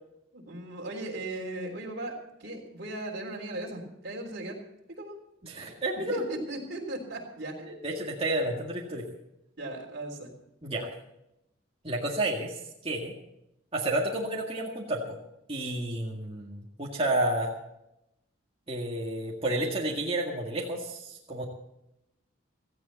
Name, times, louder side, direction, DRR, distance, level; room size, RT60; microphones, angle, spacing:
voice 1, 0.3-2.1 2.4-4.6 5.0-5.2 6.1-7.7 9.6-10.3, right 1 dB, 50° right, -1 dB, 3.6 m, -37 dB
voice 2, 5.4-6.2 7.7-9.1 10.6-10.9 11.8-13.1 13.7-15.2 15.5-17.5 18.7-21.4, right 1 dB, 30° right, -3 dB, 2.0 m, -31 dB
17.0 x 15.0 x 4.2 m, 0.83 s
head